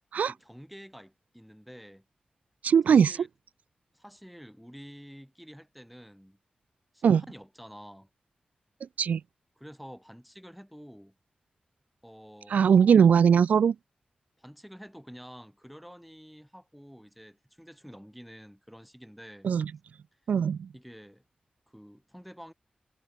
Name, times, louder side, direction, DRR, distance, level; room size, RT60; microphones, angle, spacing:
voice 1, 0.2-2.0 2.9-3.3 3.9-6.4 6.9-8.1 9.6-11.1 12.0-12.6 14.4-19.5 20.7-21.2 21.7-22.5, equal, ahead, 2.4 m, -49 dB
voice 2, 2.6-3.2 7.0-7.2 9.0-9.2 12.5-13.7 19.4-19.7 20.3-20.7, right 7 dB, 80° right, 0.3 m, -20 dB
wide cardioid pair, 175°, 3 cm